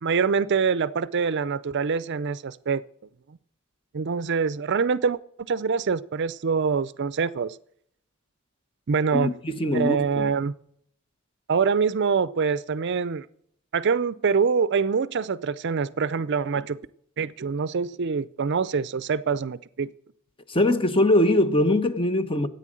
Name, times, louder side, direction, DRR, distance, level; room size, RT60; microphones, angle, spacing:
voice 1, 0.0-2.8 3.9-5.2 5.5-7.6 8.9-9.3 9.7-10.6 11.5-13.3 13.7-16.8 17.2-19.9, right 5 dB, 55° right, 0.5 m, -25 dB
voice 2, 9.1-10.3 20.5-22.5, left 1 dB, 25° left, 1.0 m, -22 dB
13.5 x 9.1 x 7.6 m
head